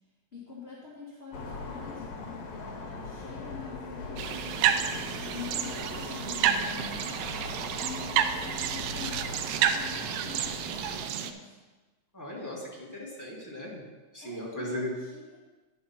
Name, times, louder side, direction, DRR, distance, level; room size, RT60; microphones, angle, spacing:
voice 1, 0.3-2.1 2.5-4.8 5.3-7.4 7.8-9.4 9.7-11.5 14.2-15.4, left 5 dB, 30° left, -6 dB, 1.2 m, -45 dB
sound 1, 1.3-11.1, left 3 dB, 65° left, 2.0 m, -40 dB
sound 2, 4.2-11.3, right 9 dB, 80° right, 1.5 m, -30 dB
voice 2, 12.1-13.8 14.1-14.9, left 1 dB, 10° left, -5 dB, 1.6 m, -37 dB
10.5 x 5.1 x 5.7 m, 1.2 s
omnidirectional pair, 3.3 m